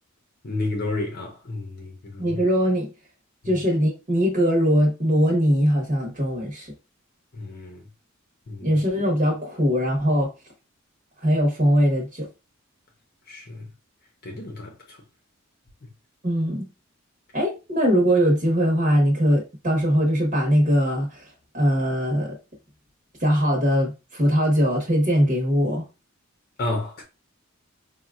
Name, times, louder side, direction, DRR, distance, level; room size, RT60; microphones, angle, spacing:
voice 1, 0.4-2.4 3.4-3.6 7.3-7.9 8.5-8.7 13.3-13.7 14.2-15.0 26.6-27.0, left 2 dB, 45° left, 0.7 m, -31 dB
voice 2, 2.2-2.9 3.5-6.7 8.6-10.3 11.2-12.3 16.2-16.7 17.3-21.2 21.5-22.4 23.2-25.8, equal, 40° right, 1.0 m, -21 dB
4.2 x 2.3 x 2.4 m
head